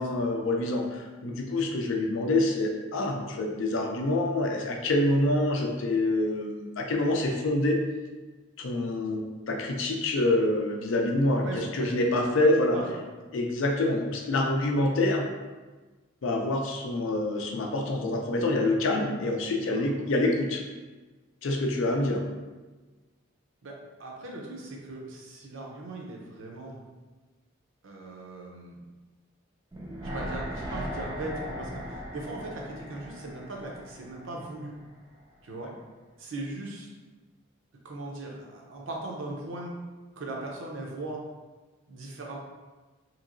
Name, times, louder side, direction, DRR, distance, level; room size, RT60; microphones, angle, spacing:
voice 1, 0.0-7.8 8.6-12.8 13.3-15.3 16.2-20.6 21.4-22.2, left 2 dB, 70° left, 2 dB, 0.4 m, -26 dB
voice 2, 11.4-12.0 12.7-13.0 19.6-20.0 23.6-26.8 27.8-28.8 30.1-34.7 35.4-35.7 36.2-36.9 37.8-39.7 40.2-41.2 41.9-42.4, right 2 dB, 70° right, -1 dB, 0.6 m, -39 dB
sound 1, 29.7-34.9 35.2-35.3, equal, 15° right, 0.3 m, -38 dB
3.0 x 2.8 x 2.5 m, 1.2 s
head